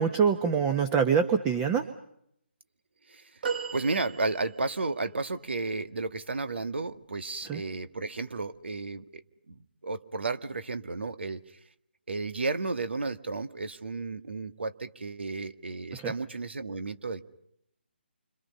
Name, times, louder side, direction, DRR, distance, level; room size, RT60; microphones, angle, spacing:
voice 1, 0.0-1.9 7.5-7.6 15.9-16.1, right 6 dB, 15° right, 8 dB, 1.3 m, -25 dB
sound 1, 3.4-4.8 5.6-5.7, right 5 dB, 55° right, 7.0 m, -35 dB
voice 2, 3.7-9.2 9.5-11.4 12.1-17.2, right 3 dB, 70° right, 9 dB, 2.0 m, -33 dB
29.5 x 26.5 x 5.5 m, 0.73 s
figure-of-eight pair, 150°, 6 cm